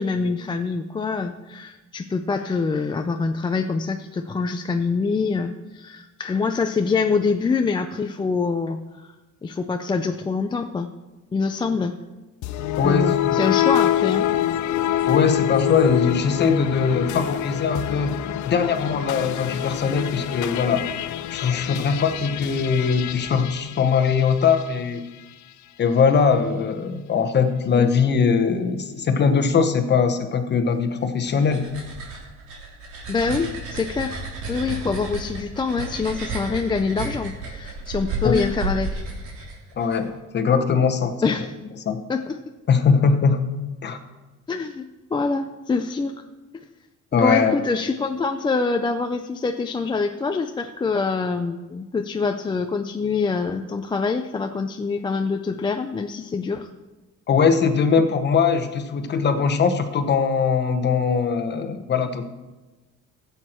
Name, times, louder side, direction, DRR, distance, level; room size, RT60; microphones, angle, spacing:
voice 1, 0.0-9.1 9.4-10.9 11.3-12.0 12.8-14.2 27.7-27.9 33.1-34.2 34.5-39.0 41.2-41.5 42.1-42.4 44.5-46.1 47.1-56.7, left 4 dB, 15° left, 6 dB, 0.4 m, -25 dB
sound 1, 12.4-24.7, left 12 dB, 75° left, 0.6 m, -26 dB
voice 2, 12.8-13.4 15.1-18.2 18.5-20.9 21.3-25.1 25.8-31.7 38.2-38.4 39.8-41.5 41.8-42.0 42.7-43.5 43.8-44.0 47.1-47.5 57.3-62.5, left 5 dB, 35° left, 8 dB, 1.0 m, -21 dB
sound 2, 31.0-40.0, right 3 dB, 75° right, 3.3 m, -32 dB
15.0 x 8.2 x 4.4 m, 1.1 s
cardioid pair, 150°, 30 cm